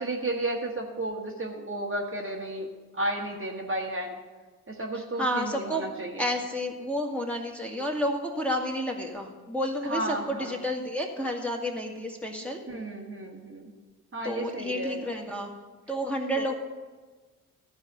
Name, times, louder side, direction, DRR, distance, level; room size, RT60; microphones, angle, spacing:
voice 1, 0.0-2.7 2.9-4.1 4.7-6.2 9.9-10.6 12.7-13.7 14.1-15.1 16.3-16.5, right 1 dB, 25° right, 0 dB, 1.5 m, -33 dB
voice 2, 4.9-5.9 6.2-12.6 14.2-15.5 15.9-16.6, equal, 5° left, -1 dB, 1.7 m, -30 dB
14.0 x 4.8 x 7.6 m, 1.3 s
figure-of-eight pair, 40°, 45 cm